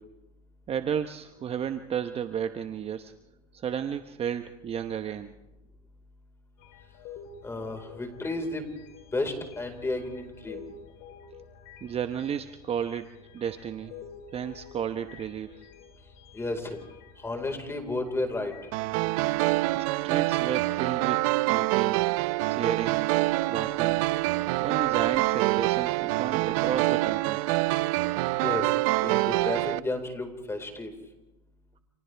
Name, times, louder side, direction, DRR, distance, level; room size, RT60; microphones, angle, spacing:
voice 1, 0.7-3.1 3.5-5.3 11.8-13.9 14.3-15.6 19.7-22.1 22.5-23.1 23.5-24.1 24.6-27.4, right 8 dB, 30° right, 9 dB, 1.0 m, -33 dB
sound 1, 6.6-23.8 24.2-24.5 26.5-26.6, left 6 dB, 65° left, 4.0 m, -50 dB
voice 2, 7.4-8.7 9.1-10.7 16.3-16.8 17.2-18.5 28.4-28.7 29.0-30.9, left 2 dB, 15° left, 5 dB, 4.6 m, -32 dB
sound 2, 18.7-29.8, right 20 dB, 65° right, 0.6 m, -26 dB
30.0 x 28.0 x 3.4 m, 0.99 s
hypercardioid pair, 105°, 20 cm